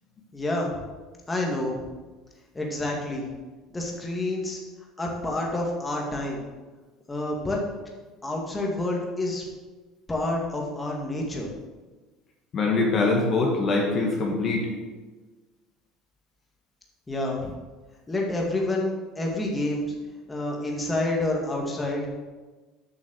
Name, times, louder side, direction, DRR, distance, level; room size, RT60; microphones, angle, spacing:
voice 1, 0.3-0.8 1.3-1.8 2.5-3.3 3.7-4.6 5.0-6.4 7.1-7.6 8.2-9.4 10.1-11.5 17.1-17.5 18.1-19.9 20.3-22.0, left 2 dB, 15° left, -1 dB, 2.1 m, -28 dB
voice 2, 12.5-14.7, left 3 dB, 45° left, 0 dB, 2.0 m, -23 dB
7.6 x 6.1 x 6.5 m, 1.3 s
supercardioid pair, 95°, 0 cm